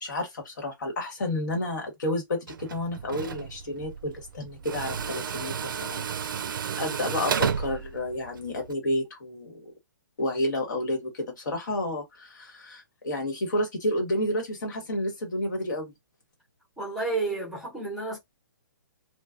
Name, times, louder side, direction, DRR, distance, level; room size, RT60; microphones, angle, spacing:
voice 1, 0.0-6.1 6.5-9.7 10.2-15.9, left 1 dB, 60° left, 1.3 m, -30 dB
Tools, 2.5-8.7, right 7 dB, 75° right, 0.4 m, -32 dB
voice 2, 16.8-18.2, right 3 dB, ahead, 0.9 m, -31 dB
2.2 x 2.2 x 2.5 m
hypercardioid pair, 165°, 11 cm